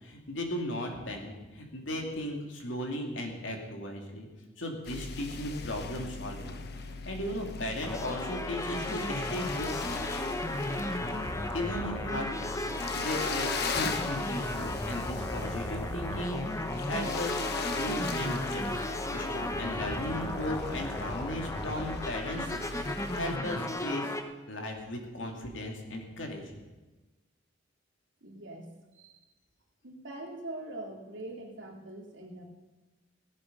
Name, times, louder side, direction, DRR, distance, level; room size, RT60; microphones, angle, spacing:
voice 1, 0.0-4.3 4.6-10.1 11.5-18.8 19.1-22.9 23.1-24.1 24.5-26.4, left 1 dB, 75° left, 2 dB, 2.6 m, -37 dB
sound 1, 4.9-23.4, left 4 dB, 55° left, 1.0 m, -39 dB
sound 2, 7.8-24.2, left 1 dB, 15° left, 0.9 m, -34 dB
voice 2, 28.2-29.2 29.8-32.4, right 1 dB, 70° right, -1 dB, 2.8 m, -43 dB
16.5 x 11.5 x 5.5 m, 1.2 s
head